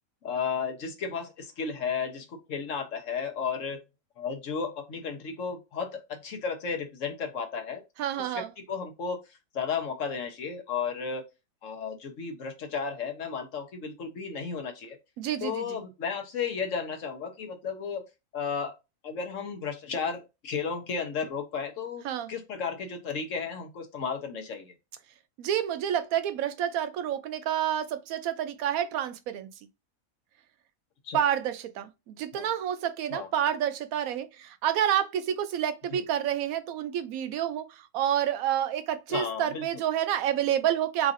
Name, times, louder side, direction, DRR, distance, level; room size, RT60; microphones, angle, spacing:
voice 1, 0.2-3.8 4.2-7.8 8.3-9.2 9.5-11.2 11.6-15.0 15.4-18.0 18.3-18.8 19.0-22.0 22.3-24.7 31.0-31.2 32.3-32.5 33.1-33.3 35.9-36.0 39.1-39.6, left 6 dB, 65° left, 1.2 m, -33 dB
voice 2, 8.0-8.5 15.2-15.8 22.0-22.3 25.4-29.7 31.1-41.1, right 10 dB, 85° right, 1.0 m, -29 dB
4.0 x 3.0 x 2.5 m
omnidirectional pair, 1.5 m